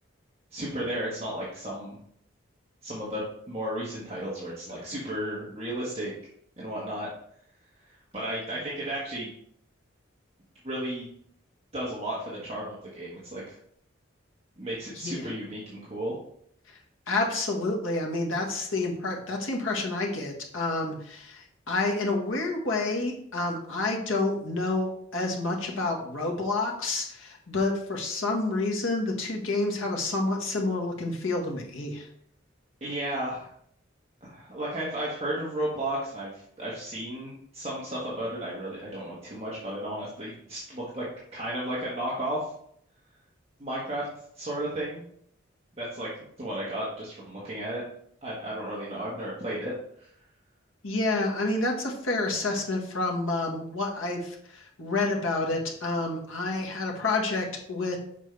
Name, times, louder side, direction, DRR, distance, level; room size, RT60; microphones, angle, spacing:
voice 1, 0.5-1.9 2.8-6.1 6.6-7.1 8.1-9.3 10.6-11.1 11.7-13.6 14.6-16.1 32.8-33.5 34.2-41.0 41.3-42.5 43.6-44.1 44.3-45.0 45.8-46.1 46.4-47.8 48.2-49.7 50.0-50.1, right 1 dB, 30° right, -7 dB, 1.5 m, -33 dB
voice 2, 17.1-32.1 50.8-58.0, left 2 dB, 85° left, 0 dB, 1.6 m, -29 dB
7.5 x 5.4 x 3.4 m, 0.67 s
head